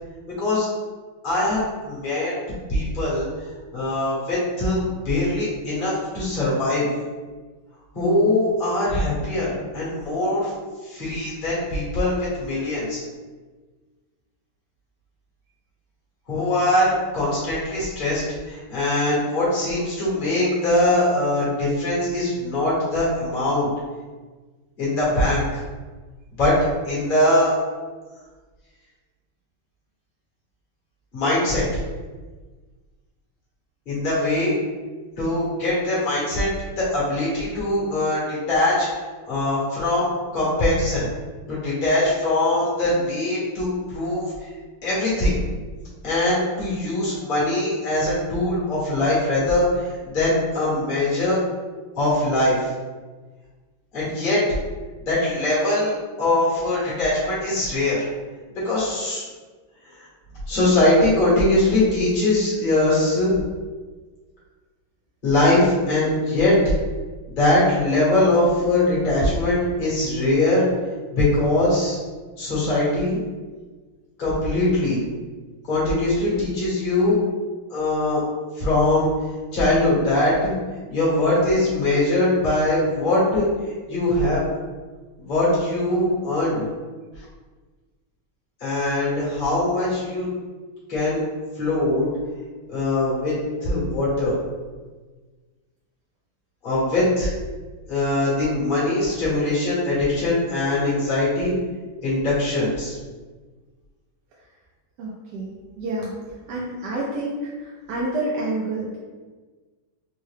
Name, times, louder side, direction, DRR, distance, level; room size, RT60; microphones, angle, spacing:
voice 1, 1.2-2.3 2.7-3.3 3.7-6.8 7.9-10.5 10.8-13.0 16.3-23.7 24.8-25.6 26.4-26.5 26.8-27.5 31.1-31.6 33.9-34.6 35.2-36.5 36.8-38.9 39.3-41.1 41.5-44.2 44.8-45.4 46.0-49.8 50.1-51.4 52.0-52.7 53.9-54.4 55.1-58.0 58.5-59.2 60.5-63.3 65.2-66.6 67.3-70.6 71.1-72.0 72.4-73.2 74.2-75.0 75.7-77.2 77.7-78.2 78.6-79.1 79.5-80.5 80.9-83.5 83.9-84.4 85.2-86.7 88.6-90.3 90.9-91.2 91.6-92.1 92.7-93.3 93.6-94.3 96.6-97.3 97.9-101.5 102.0-102.9, left 1 dB, 30° left, -8 dB, 1.0 m, -21 dB
voice 2, 105.0-106.1 106.5-109.0, right 2 dB, 75° right, -6 dB, 1.0 m, -28 dB
3.6 x 2.1 x 3.2 m, 1.3 s
omnidirectional pair, 2.3 m